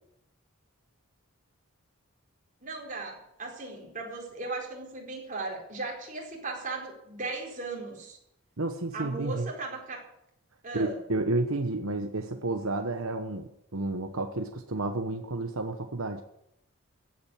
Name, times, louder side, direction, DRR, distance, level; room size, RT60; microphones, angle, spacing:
voice 1, 2.6-8.2 8.9-10.0 10.6-11.0, right 3 dB, 40° right, -1 dB, 4.6 m, -37 dB
voice 2, 8.6-9.5 10.7-16.2, right 2 dB, 75° right, 6 dB, 1.1 m, -31 dB
15.5 x 8.7 x 8.6 m, 0.81 s
head